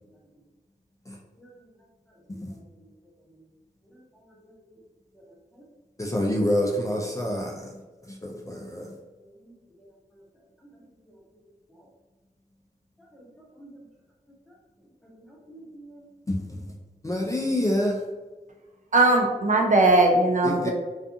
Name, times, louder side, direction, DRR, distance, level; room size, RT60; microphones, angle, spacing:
voice 1, 6.0-7.7 8.2-8.9 16.3-16.6 17.0-18.0 20.4-20.7, left 1 dB, 20° left, 0.4 m, -27 dB
voice 2, 9.4-9.9 10.1-10.2 11.0-11.2 11.7-11.8 13.1-13.9 15.0-16.0, right 1 dB, ahead, 0.8 m, -51 dB
voice 3, 18.9-20.7, right 2 dB, 55° right, 0.4 m, -19 dB
2.4 x 2.3 x 2.6 m
cardioid pair, 60°, 16 cm